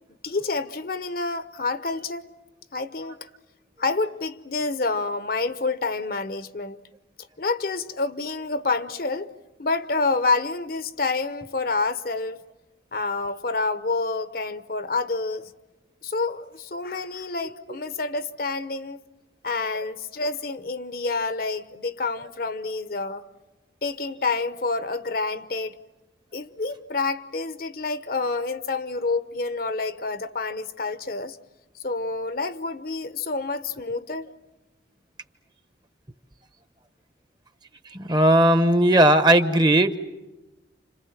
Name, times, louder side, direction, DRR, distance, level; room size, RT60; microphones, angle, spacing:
voice 1, 0.2-2.3 2.7-3.3 3.8-6.8 7.4-9.3 9.6-12.4 12.9-15.5 16.0-19.0 19.4-23.3 23.8-25.8 26.3-31.4 31.8-34.3, left 3 dB, 50° left, 0.9 m, -28 dB
voice 2, 37.9-40.0, right 1 dB, 25° right, 1.0 m, -17 dB
30.0 x 27.0 x 7.3 m
head